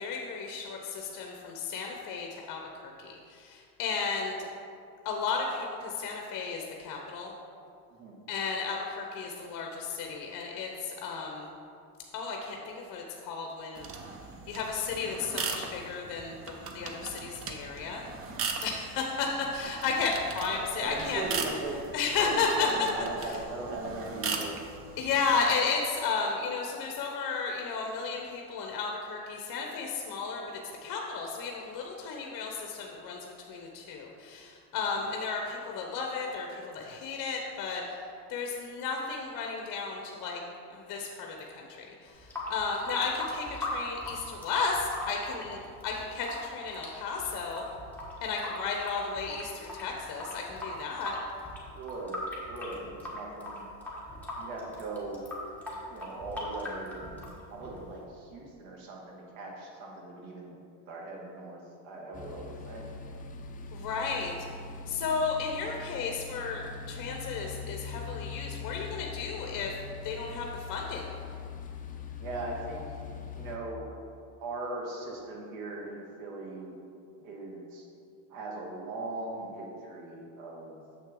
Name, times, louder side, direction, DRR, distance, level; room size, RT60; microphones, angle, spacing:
voice 1, 0.0-4.3 5.0-7.3 8.3-11.5 12.1-13.9 14.5-18.0 18.6-21.2 21.9-22.9 23.2-23.3 25.0-30.5 30.8-38.0 38.3-40.4 40.7-47.6 48.2-51.2 63.7-64.5 64.9-66.6 66.9-69.7 70.0-71.1, left 5 dB, 45° left, 1 dB, 0.8 m, -33 dB
sound 1, 13.8-25.4, right 4 dB, 30° right, 0.6 m, -39 dB
voice 2, 20.4-21.8 22.2-24.5 34.7-35.0 51.8-53.6 54.4-55.2 55.9-56.9 57.5-60.5 60.9-62.9 72.2-72.8 73.3-73.9 74.4-76.8 77.2-77.9 78.3-80.8, right 2 dB, 70° right, -1 dB, 1.7 m, -39 dB
Water tap faucet / Sink (filling or washing) / Drip, 42.1-58.0, left 1 dB, 5° left, 1.5 m, -40 dB
sound 2, 62.1-73.6, left 5 dB, 20° left, 0.4 m, -42 dB
6.8 x 6.3 x 3.7 m, 2.5 s
supercardioid pair, 115°, 47 cm